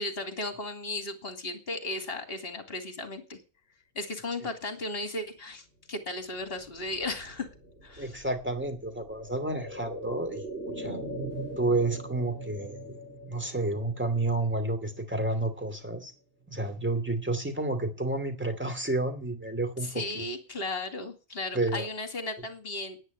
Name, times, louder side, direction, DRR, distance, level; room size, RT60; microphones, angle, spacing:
voice 1, 0.0-3.4 3.9-7.5 7.8-8.2 19.8-23.0, left 2 dB, 45° left, 6 dB, 2.7 m, -35 dB
sound 1, 6.3-16.1 16.4-16.5, right 1 dB, 45° right, 2.9 m, -41 dB
voice 2, 8.0-10.5 10.8-11.0 11.6-13.0 13.3-16.1 16.5-20.0 21.5-21.9, right 2 dB, 10° right, 7 dB, 2.6 m, -30 dB
10.0 x 9.7 x 9.4 m, 0.34 s
omnidirectional pair, 1.5 m